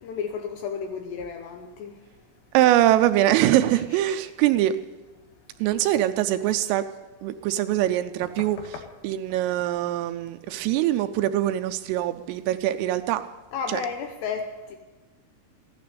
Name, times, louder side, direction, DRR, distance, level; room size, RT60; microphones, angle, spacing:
voice 1, 0.0-1.9 8.4-8.5 8.7-8.8 13.5-14.8, left 6 dB, 80° left, 5 dB, 2.5 m, -32 dB
voice 2, 2.5-4.8 5.6-6.8 7.2-8.6 9.0-13.2 13.7-13.8, right 13 dB, 85° right, 9 dB, 3.1 m, -23 dB
15.0 x 11.5 x 6.7 m, 1.2 s
omnidirectional pair, 5.9 m